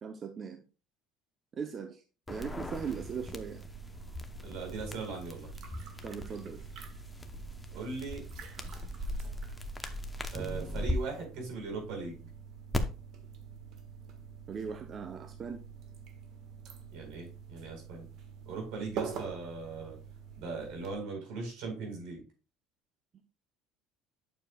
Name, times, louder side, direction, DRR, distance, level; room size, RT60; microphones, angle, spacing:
voice 1, 0.0-0.6 1.5-2.0 2.3-3.6 6.0-6.6 14.5-15.6, right 6 dB, 35° right, 6 dB, 0.7 m, -39 dB
sound 1, 2.3-10.9 12.7-12.8, left 1 dB, 10° left, 0.9 m, -39 dB
sound 2, 2.4-20.9, right 7 dB, 60° right, 1.5 m, -47 dB
voice 2, 4.4-5.5 7.7-8.2 10.3-12.2 16.9-18.0 18.5-20.0 20.4-22.2, right 4 dB, 75° right, 2 dB, 4.4 m, -39 dB
9.1 x 6.8 x 2.3 m, 0.33 s
cardioid pair, 120°, 0 cm